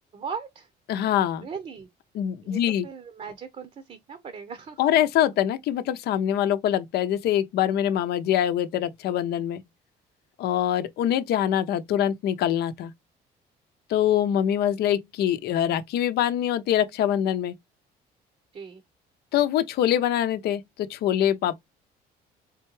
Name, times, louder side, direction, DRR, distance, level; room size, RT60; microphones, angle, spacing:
voice 1, 0.1-0.7 1.4-1.9 2.4-4.8 18.5-18.8, right 6 dB, 40° right, 0.7 m, -38 dB
voice 2, 0.9-1.5 2.2-2.9 4.8-9.6 10.4-12.9 13.9-17.5 19.3-20.6 20.9-21.5, left 11 dB, 70° left, 0.7 m, -24 dB
3.7 x 3.4 x 3.0 m
cardioid pair, 110°, 17 cm